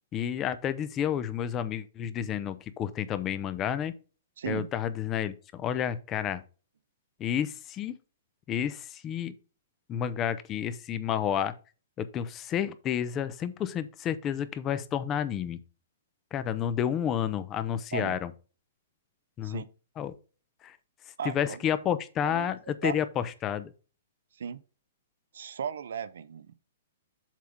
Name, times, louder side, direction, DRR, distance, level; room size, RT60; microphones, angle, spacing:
voice 1, 0.1-3.9 4.5-6.4 7.2-7.9 8.5-9.3 9.9-11.5 12.0-15.6 16.3-18.3 19.4-19.6 20.0-20.1 20.6-20.8 21.2-23.7, left 9 dB, 25° left, 0.7 m, -30 dB
voice 2, 4.4-4.7 17.9-18.1 19.4-19.7 21.2-21.6 22.2-22.5 22.8-23.0 24.4-24.6 25.3-26.5, right 7 dB, 75° right, 0.7 m, -36 dB
7.4 x 3.6 x 5.3 m
hypercardioid pair, 145°, 0 cm